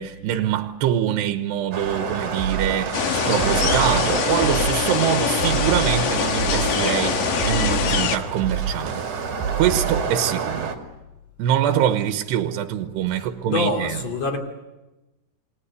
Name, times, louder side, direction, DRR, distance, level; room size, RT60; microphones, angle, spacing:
voice 1, 0.0-9.0 9.6-10.7 11.4-14.0, right 10 dB, 80° right, 3.1 m, -24 dB
sound 1, 1.7-10.7, right 4 dB, 40° right, 3.2 m, -29 dB
sound 2, 2.4-10.2, right 8 dB, 60° right, 3.0 m, -29 dB
sound 3, 2.9-8.2, left 8 dB, 60° left, 2.7 m, -24 dB
voice 2, 13.1-14.4, left 3 dB, 40° left, 3.6 m, -26 dB
28.5 x 20.5 x 8.4 m
omnidirectional pair, 4.9 m